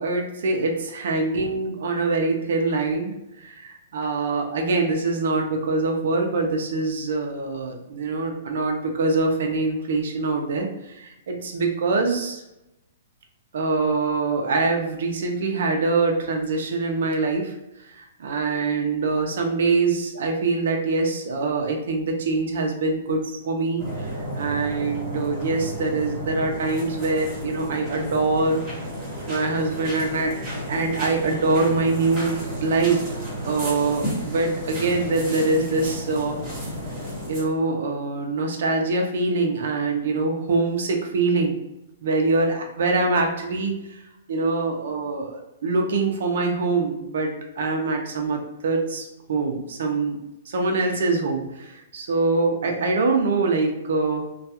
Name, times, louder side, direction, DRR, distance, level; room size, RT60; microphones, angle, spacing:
voice 1, 0.0-10.7 11.0-12.4 13.5-17.5 17.8-23.8 24.3-28.6 29.3-30.3 30.7-33.0 33.5-36.4 37.3-41.6 42.0-43.7 44.3-50.2 50.5-54.3, right 3 dB, 60° right, 2 dB, 0.5 m, -24 dB
sound 1, 23.8-37.4, equal, 15° right, 0.9 m, -32 dB
2.3 x 2.2 x 2.8 m, 0.90 s
hypercardioid pair, 175°, 0 cm